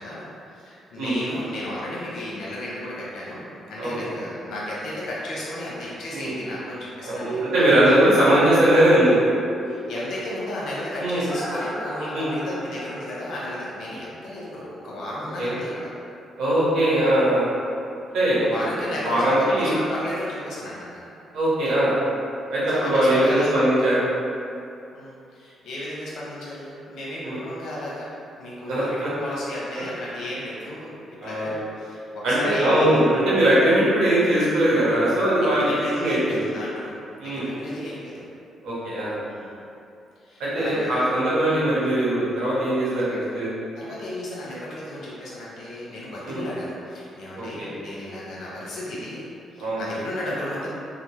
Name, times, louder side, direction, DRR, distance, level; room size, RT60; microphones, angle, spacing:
voice 1, 0.0-7.9 9.6-15.9 18.4-21.1 22.7-23.6 24.9-31.0 31.2-33.1 35.4-37.0 37.2-38.2 39.3-39.6 40.2-41.1 43.8-49.2 49.5-50.7, left 1 dB, 70° left, -6 dB, 0.8 m, -34 dB
voice 2, 3.8-4.1 6.1-6.3 7.0-9.2 11.0-11.2 12.1-12.3 15.4-15.6 16.4-17.5 18.1-18.7 19.0-19.8 21.3-22.0 22.5-24.1 27.2-27.4 28.7-29.1 31.2-31.6 32.2-35.6 36.0-36.5 37.2-37.5 38.6-39.2 40.4-43.5 46.3-46.4 47.4-47.7 49.6-49.8, right 1 dB, 80° right, -9 dB, 1.0 m, -20 dB
sound 1, 7.1-15.0 15.4-15.5, right 2 dB, 5° right, 1.1 m, -36 dB
2.9 x 2.0 x 3.2 m, 2.6 s
cardioid pair, 90°, 0 cm